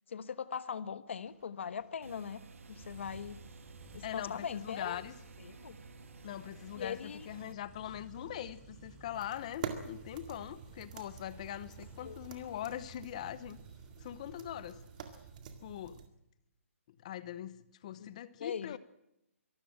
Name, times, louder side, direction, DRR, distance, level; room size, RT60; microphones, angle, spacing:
voice 1, 0.1-2.4 2.7-3.4 3.9-5.0 5.4-5.8 6.8-7.3 12.0-12.2 18.0-18.1 18.4-18.8, left 7 dB, 55° left, 14 dB, 1.2 m, -40 dB
sound 1, 1.3-15.3, right 4 dB, 15° right, 3.2 m, -56 dB
sound 2, 2.0-7.5, right 4 dB, 65° right, 1.7 m, -53 dB
voice 2, 4.0-5.2 6.2-13.6 14.0-14.8 15.6-16.0 16.9-18.8, left 11 dB, 30° left, 17 dB, 0.8 m, -42 dB
sound 3, 9.1-16.1, right 7 dB, 30° right, 2.0 m, -47 dB
23.5 x 13.0 x 8.8 m, 0.83 s
hypercardioid pair, 165°, 8 cm